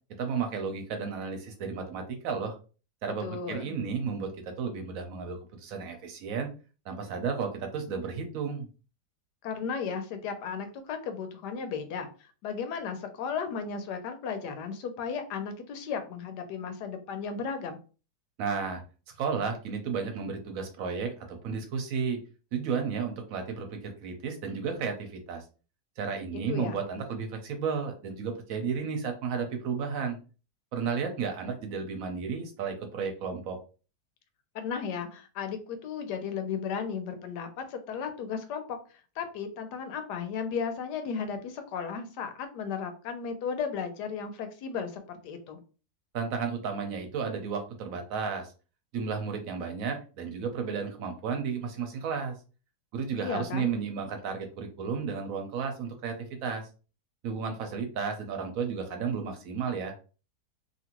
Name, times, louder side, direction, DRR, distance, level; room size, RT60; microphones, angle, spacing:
voice 1, 0.2-2.6 3.0-6.5 6.9-8.7 18.4-18.8 19.2-22.2 22.5-25.4 26.0-30.2 30.7-33.6 46.1-48.5 48.9-52.3 52.9-56.1 56.4-56.7 57.2-59.9, right 6 dB, 65° right, 5 dB, 1.0 m, -33 dB
voice 2, 3.2-3.8 9.4-17.8 26.3-26.8 34.5-38.6 39.2-45.6 53.2-53.7, left 6 dB, 80° left, 8 dB, 1.2 m, -35 dB
2.8 x 2.6 x 2.9 m, 0.35 s
omnidirectional pair, 1.8 m